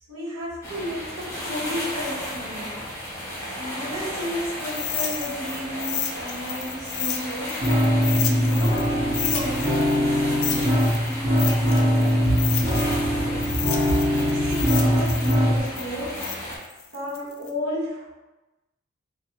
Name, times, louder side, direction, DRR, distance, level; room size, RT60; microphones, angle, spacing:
voice 1, 0.1-3.3 3.5-7.6 8.2-12.3 12.6-12.7 13.5-16.2 16.9-18.1, equal, 80° right, -9 dB, 1.1 m, -32 dB
sound 1, 0.6-16.6, equal, 15° left, 0.6 m, -34 dB
sound 2, 4.7-8.9 9.1-13.1 13.4-17.5, left 9 dB, 85° left, 0.3 m, -32 dB
sound 3, 7.6-15.6, equal, 45° right, 1.1 m, -22 dB
2.4 x 2.3 x 2.8 m, 1.1 s
head